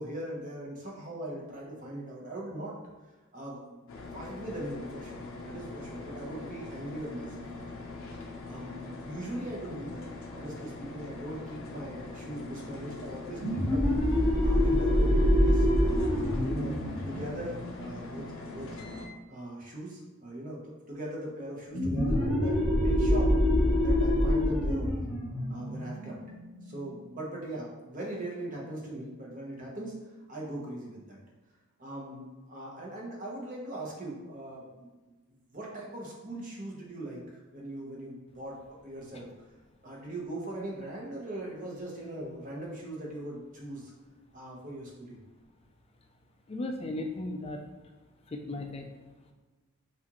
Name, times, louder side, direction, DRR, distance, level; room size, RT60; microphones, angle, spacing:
voice 1, 0.0-2.7 3.3-3.9 4.1-7.8 8.5-18.8 19.3-23.3 23.8-25.0 25.5-26.2 26.6-29.9 30.3-31.2 31.8-35.1 35.5-38.6 38.8-39.3 39.8-43.9 44.3-45.2, right 1 dB, 35° right, -3 dB, 0.9 m, -40 dB
sound 1, 3.9-19.1, left 3 dB, 65° left, 0.7 m, -42 dB
sound 2, 13.4-18.7 21.7-27.0, left 1 dB, ahead, 1.3 m, -26 dB
voice 2, 46.5-47.6 48.3-48.9, left 2 dB, 25° left, 4 dB, 0.4 m, -35 dB
5.9 x 2.6 x 3.0 m, 1.2 s
head